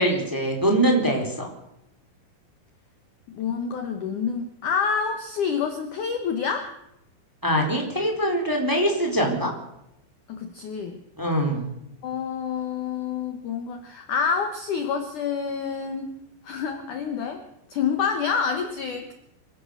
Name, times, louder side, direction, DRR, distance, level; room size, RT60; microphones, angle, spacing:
voice 1, 0.0-1.5 7.4-9.5 11.2-11.7, right 1 dB, 5° right, 2 dB, 3.3 m, -23 dB
voice 2, 3.3-6.7 10.3-11.0 12.0-16.2 16.4-17.4 17.7-19.1, left 6 dB, 70° left, 6 dB, 1.9 m, -28 dB
25.5 x 16.0 x 6.6 m, 0.82 s
omnidirectional pair, 5.8 m